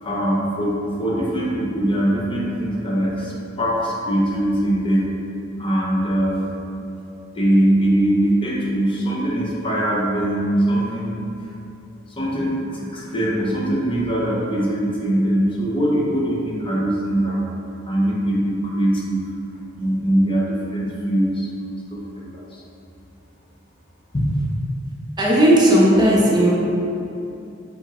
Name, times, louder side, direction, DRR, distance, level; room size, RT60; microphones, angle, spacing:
voice 1, 0.0-5.1 5.6-6.6 7.3-11.2 12.2-17.4 17.9-19.2 19.8-21.5 21.9-22.6 24.1-24.2, right 1 dB, 25° left, -5 dB, 0.7 m, -22 dB
voice 2, 25.2-26.5, right 1 dB, 20° right, -4 dB, 0.4 m, -15 dB
4.8 x 2.0 x 4.1 m, 2.8 s
head